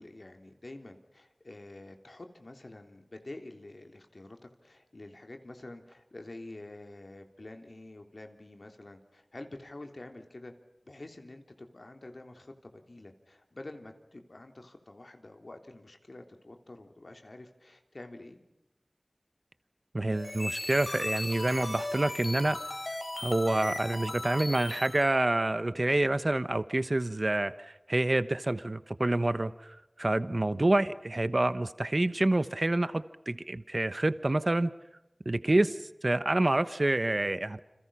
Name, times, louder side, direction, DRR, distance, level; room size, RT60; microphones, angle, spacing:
voice 1, 0.0-10.5 10.9-18.4, left 2 dB, 80° left, 5 dB, 3.4 m, -48 dB
voice 2, 19.9-22.6 23.2-34.7 35.2-37.6, right 2 dB, 60° right, 13 dB, 1.1 m, -28 dB
sound 1, 20.1-25.1, left 1 dB, 65° left, 4.6 m, -37 dB
29.5 x 27.5 x 5.7 m, 0.94 s
wide cardioid pair, 45°, 0 cm